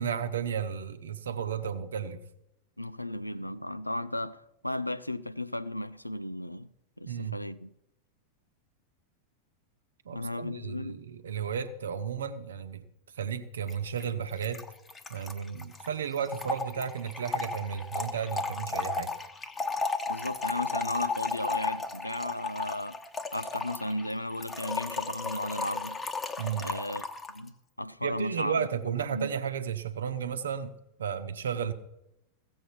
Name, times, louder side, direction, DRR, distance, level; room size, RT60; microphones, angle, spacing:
voice 1, 0.0-2.2 7.0-7.4 10.0-12.8 13.2-14.6 15.1-19.2 26.4-26.7 28.0-30.7 31.0-31.7, right 7 dB, 65° right, 1.0 m, -33 dB
voice 2, 2.8-6.7 7.0-7.7 10.1-11.0 20.1-23.0 23.3-26.0 26.6-28.7 29.1-29.3, left 1 dB, 85° left, 0.5 m, -35 dB
Trickle dribble / Fill (with liquid), 13.7-13.8 14.0-14.1 14.3-27.4, left 4 dB, 15° left, 1.1 m, -34 dB
15.5 x 7.7 x 5.7 m
figure-of-eight pair, 90°, 0 cm